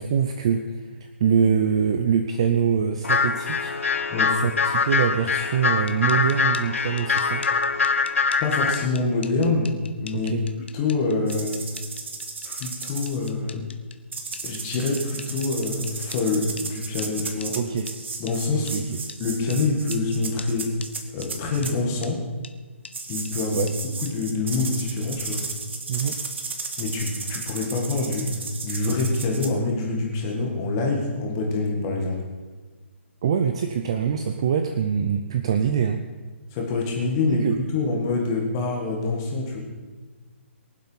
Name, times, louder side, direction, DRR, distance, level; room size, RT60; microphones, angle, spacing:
voice 1, 0.0-3.7 4.3-7.4 10.1-10.4 17.6-17.9 18.5-19.0 23.5-23.7 25.9-26.2 33.2-36.0 37.3-37.6, right 7 dB, 25° right, 7 dB, 0.5 m, -24 dB
sound 1, 3.0-8.9, left 5 dB, 80° left, 1.0 m, -23 dB
sound 2, 5.7-16.2 16.6-16.7 17.0-17.1 17.4-17.5 17.9-18.0 18.3-18.4 18.7-18.8 19.1-19.2 19.5-19.6 19.9-20.0 20.4-20.5 20.8-20.9 21.2-21.3 21.6-21.7 22.0-22.1 22.4-22.5 22.8-22.9 23.2-23.3 23.7-23.8 24.1-24.2, left 5 dB, 55° left, 1.1 m, -41 dB
voice 2, 8.4-10.3 10.7-11.6 12.4-13.7 14.4-17.6 18.2-18.9 19.2-20.7 21.1-22.2 23.1-23.7 24.0-25.4 26.8-32.2 36.5-39.6, left 3 dB, 15° left, 0 dB, 1.8 m, -26 dB
sound 3, 11.3-13.3 14.1-21.7 22.9-29.5, right 4 dB, 60° right, 2.1 m, -34 dB
23.0 x 7.8 x 5.7 m, 1.4 s
hypercardioid pair, 180°, 7 cm